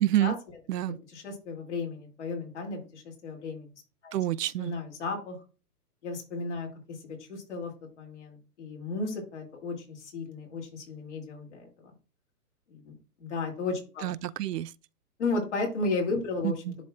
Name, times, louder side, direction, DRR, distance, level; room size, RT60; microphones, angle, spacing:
voice 1, 0.0-0.3 0.7-1.0 4.1-4.7 14.0-14.7 16.4-16.7, right 13 dB, 85° right, 0.6 m, -28 dB
voice 2, 1.1-3.7 4.0-4.2 4.6-5.4 6.0-7.7 8.0-11.9 12.7-12.9 13.2-14.1 15.2-16.5, left 3 dB, 45° left, 2.5 m, -34 dB
11.0 x 4.2 x 2.4 m
hypercardioid pair, 180°, 47 cm